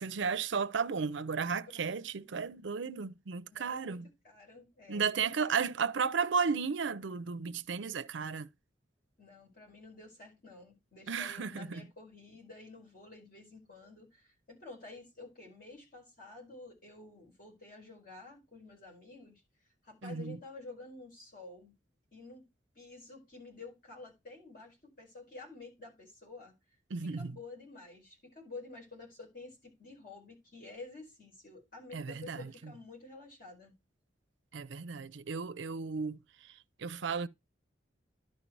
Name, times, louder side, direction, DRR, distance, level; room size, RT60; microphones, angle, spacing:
voice 1, 0.0-4.1 4.9-8.5 11.1-11.9 20.0-20.4 26.9-27.3 31.9-32.5 34.5-36.2 36.8-37.3, right 5 dB, 75° right, 0.5 m, -34 dB
voice 2, 1.5-2.4 3.5-5.5 9.2-19.4 19.8-21.7 22.1-22.5 22.7-26.5 27.0-33.7, left 3 dB, 45° left, 4.8 m, -50 dB
11.5 x 4.5 x 4.6 m
head